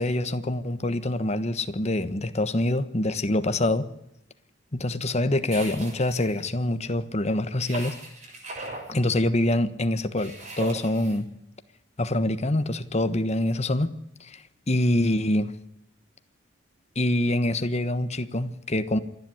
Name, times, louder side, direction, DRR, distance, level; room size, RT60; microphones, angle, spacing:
voice 1, 0.0-3.9 4.7-8.0 8.9-11.3 12.0-13.9 14.2-14.4 14.7-15.5 16.9-19.0, left 1 dB, 35° left, 11 dB, 1.3 m, -25 dB
sound 1, 5.5-6.4 7.6-8.9 10.2-11.2, right 2 dB, 40° right, 7.0 m, -38 dB
27.0 x 10.5 x 9.8 m, 0.83 s
head